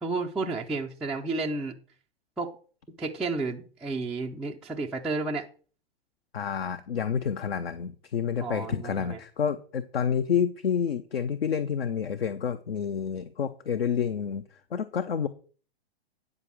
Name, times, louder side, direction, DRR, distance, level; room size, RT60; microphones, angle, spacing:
voice 1, 0.0-1.7 2.4-2.5 3.0-5.5 8.4-9.2, right 3 dB, ahead, 0.3 m, -31 dB
voice 2, 6.3-14.4 14.7-15.3, left 7 dB, 70° left, 0.8 m, -29 dB
9.8 x 5.0 x 6.1 m
figure-of-eight pair, 105°, 31 cm